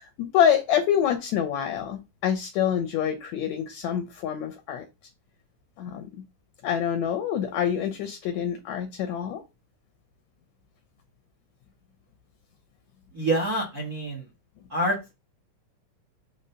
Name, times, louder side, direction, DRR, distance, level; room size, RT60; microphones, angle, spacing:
voice 1, 0.0-4.9 5.8-6.1 6.6-9.4, left 9 dB, 75° left, 7 dB, 1.8 m, -26 dB
voice 2, 13.1-14.3 14.7-15.0, right 1 dB, 45° right, -1 dB, 1.3 m, -26 dB
5.2 x 3.8 x 5.5 m, 0.26 s
omnidirectional pair, 3.8 m